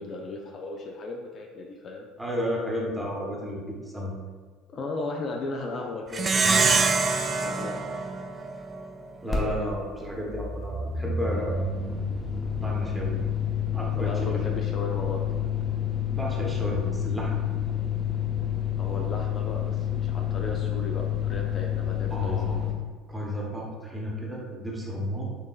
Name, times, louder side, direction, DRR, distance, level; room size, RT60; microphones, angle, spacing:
voice 1, 0.0-2.1 4.7-6.7 7.4-7.7 14.0-15.3 18.8-22.7, left 2 dB, 45° left, 1 dB, 0.4 m, -36 dB
voice 2, 2.2-4.2 9.2-11.7 12.6-13.2 13.7-14.5 16.1-17.4 22.1-22.6 23.1-25.2, equal, 10° right, -3 dB, 1.1 m, -32 dB
Plucked string instrument, 6.1-8.9, right 4 dB, 30° right, 0.3 m, -24 dB
sound 1, 9.3-9.4 9.7-22.7, left 8 dB, 15° left, 0.9 m, -29 dB
4.4 x 2.9 x 2.4 m, 1.5 s
hypercardioid pair, 65°, 0 cm